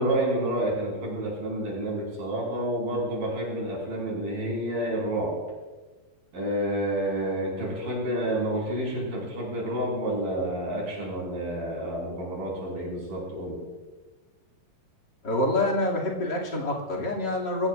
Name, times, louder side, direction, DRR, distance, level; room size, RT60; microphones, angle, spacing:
voice 1, 0.0-5.3 6.3-13.5, right 1 dB, 65° right, -3 dB, 6.9 m, -29 dB
voice 2, 15.2-17.7, left 1 dB, 30° left, -3 dB, 2.7 m, -26 dB
23.5 x 15.5 x 2.5 m, 1.3 s
omnidirectional pair, 4.4 m